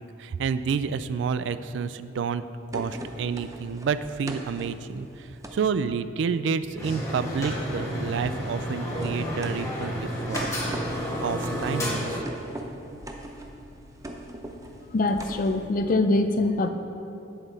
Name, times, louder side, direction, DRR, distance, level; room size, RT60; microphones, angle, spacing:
voice 1, 0.0-2.4 2.7-10.5 10.9-12.2, right 6 dB, 65° right, 13 dB, 0.3 m, -29 dB
sound 1, 2.7-5.7 6.6-15.6, right 1 dB, 15° right, 0.5 m, -41 dB
sound 2, 6.8-12.2, equal, 15° left, 1.7 m, -30 dB
voice 2, 14.9-16.7, left 2 dB, 45° left, 8 dB, 0.4 m, -23 dB
8.2 x 7.1 x 4.0 m, 2.7 s
head